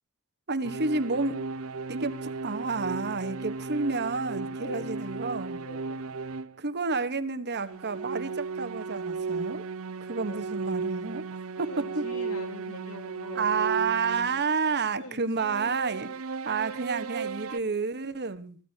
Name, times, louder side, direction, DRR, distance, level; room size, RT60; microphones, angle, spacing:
voice 1, 0.5-1.4 1.9-5.6 6.6-9.6 10.0-11.3 11.6-12.0 13.3-16.1 16.4-18.6, right 4 dB, 50° right, 12 dB, 1.3 m, -30 dB
sound 1, 0.6-6.6 7.5-14.5 15.4-17.6, right 4 dB, 70° right, 0.8 m, -35 dB
voice 2, 4.6-5.1 5.6-6.1 10.3-10.4 11.6-13.5 14.9-15.7, left 2 dB, 80° left, 5 dB, 3.8 m, -44 dB
23.0 x 15.5 x 2.9 m, 0.35 s
head